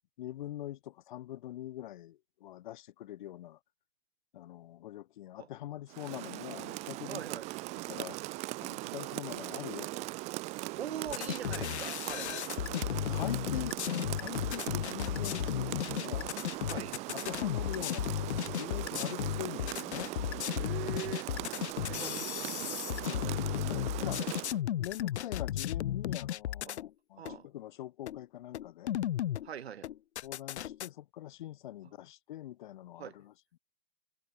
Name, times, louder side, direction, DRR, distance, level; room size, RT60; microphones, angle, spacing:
voice 1, 0.2-3.6 4.3-7.2 7.9-8.2 8.6-10.1 12.7-13.8 14.1-16.3 17.1-20.1 21.9-22.3 23.0-23.3 23.7-24.3 24.7-28.9 30.2-33.6, left 13 dB, 45° left, 2.3 m, -43 dB
Rain, 5.9-24.6, right 22 dB, 20° right, 1.2 m, -40 dB
voice 2, 7.1-7.5 8.8-8.9 10.8-12.3 16.7-17.0 20.6-21.3 21.7-23.4 26.6-26.8 27.2-27.5 29.4-29.9 33.0-33.2, right 9 dB, 70° right, 4.3 m, -43 dB
sound 1, 11.1-26.9 27.2-27.4 28.1-28.2 28.5-29.5 29.8-30.9, left 12 dB, 85° left, 0.5 m, -35 dB
hypercardioid pair, 155°, 33 cm